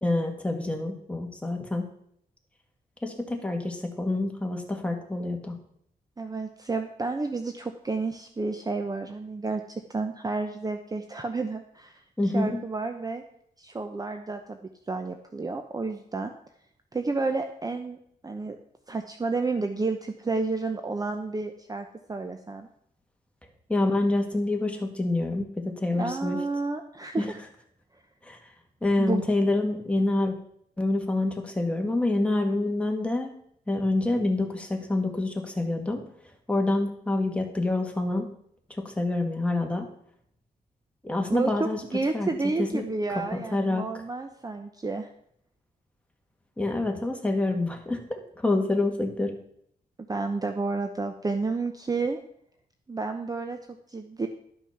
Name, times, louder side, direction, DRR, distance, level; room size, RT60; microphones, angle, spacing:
voice 1, 0.0-1.9 3.0-5.6 12.2-12.6 23.7-26.4 27.2-27.3 28.3-28.4 28.8-30.4 30.8-33.3 33.7-36.0 36.5-38.3 38.8-39.9 41.0-41.8 42.1-42.3 42.6-42.8 43.3-43.9 46.6-49.4, left 2 dB, 5° left, 3 dB, 1.9 m, -27 dB
voice 2, 6.2-9.6 9.9-11.9 12.3-13.2 13.6-14.6 14.9-16.3 16.9-18.0 18.2-18.6 18.9-22.7 26.0-27.4 29.0-29.2 41.3-45.1 50.1-52.2 52.9-53.6 53.9-54.3, right 3 dB, 25° right, 6 dB, 0.8 m, -30 dB
12.0 x 6.0 x 5.9 m, 0.68 s
cardioid pair, 105°, 16 cm